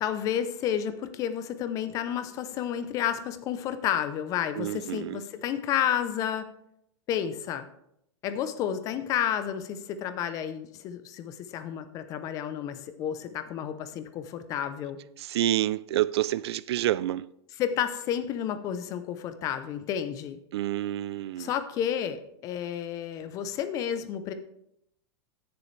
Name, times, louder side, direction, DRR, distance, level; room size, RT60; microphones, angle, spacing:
voice 1, 0.0-6.5 7.1-7.7 8.2-15.0 17.6-20.4 21.4-24.3, left 9 dB, 20° left, 0.6 m, -31 dB
voice 2, 4.6-5.2 15.2-17.3 20.5-21.5, right 13 dB, 60° right, 0.4 m, -28 dB
16.0 x 6.9 x 3.2 m
supercardioid pair, 165°, 15 cm